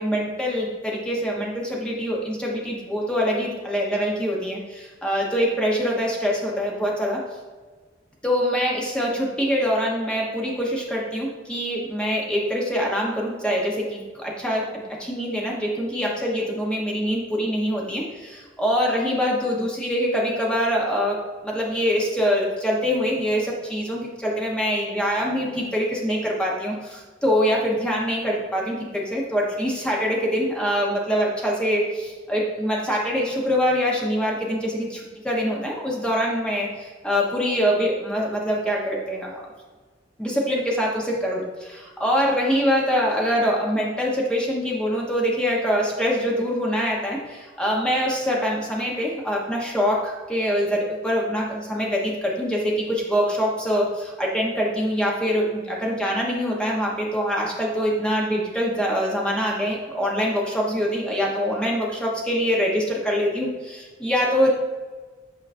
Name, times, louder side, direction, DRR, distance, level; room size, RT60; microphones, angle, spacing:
voice 1, 0.0-7.2 8.2-14.7 15.0-39.4 40.2-64.5, equal, 5° left, -3 dB, 1.2 m, -24 dB
8.5 x 4.9 x 2.7 m, 1.3 s
head